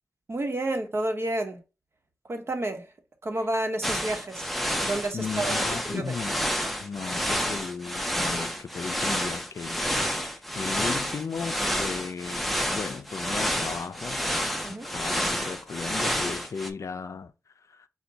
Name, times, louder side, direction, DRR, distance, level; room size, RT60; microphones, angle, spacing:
voice 1, 0.3-1.6 2.3-2.9 3.2-4.5 4.8-5.6 5.9-6.1 14.6-14.9, right 1 dB, 50° right, 1.0 m, -30 dB
sound 1, 3.8-16.7, equal, ahead, 0.7 m, -29 dB
voice 2, 5.1-6.4 6.8-14.2 14.7-17.3 17.7-17.9, left 5 dB, 70° left, 0.4 m, -36 dB
5.7 x 2.3 x 3.9 m
wide cardioid pair, 80°, 5 cm